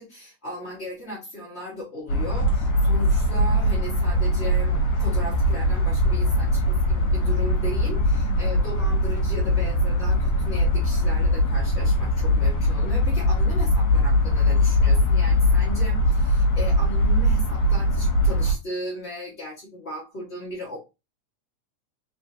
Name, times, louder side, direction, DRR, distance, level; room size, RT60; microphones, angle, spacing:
voice 1, 0.0-20.8, left 1 dB, 35° left, -7 dB, 1.1 m, -36 dB
sound 1, 2.1-18.5, left 1 dB, 55° left, 1.9 m, -21 dB
4.4 x 4.1 x 2.7 m, 0.26 s
omnidirectional pair, 3.3 m